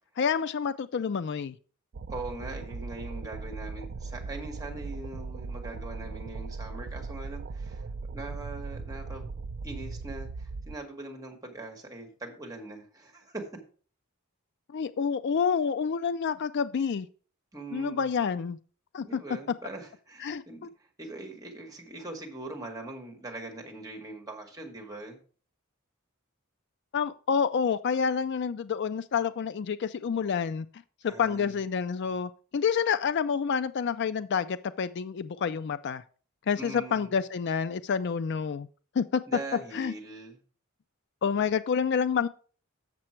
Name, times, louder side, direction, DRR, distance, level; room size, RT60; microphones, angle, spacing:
voice 1, 0.2-1.5 14.7-17.1 17.7-18.6 18.9-19.2 20.2-20.7 26.9-30.7 31.0-36.0 36.5-38.7 39.0-39.2 39.7-39.9 41.2-42.3, left 6 dB, 55° left, 0.4 m, -28 dB
sound 1, 1.9-10.8, right 4 dB, 55° right, 0.4 m, -38 dB
voice 2, 2.1-9.2 9.6-13.4 17.5-18.1 19.0-20.7 21.0-25.2 31.1-31.6 36.6-37.2 39.3-40.4, right 2 dB, 15° right, 1.8 m, -41 dB
7.5 x 6.8 x 4.4 m
head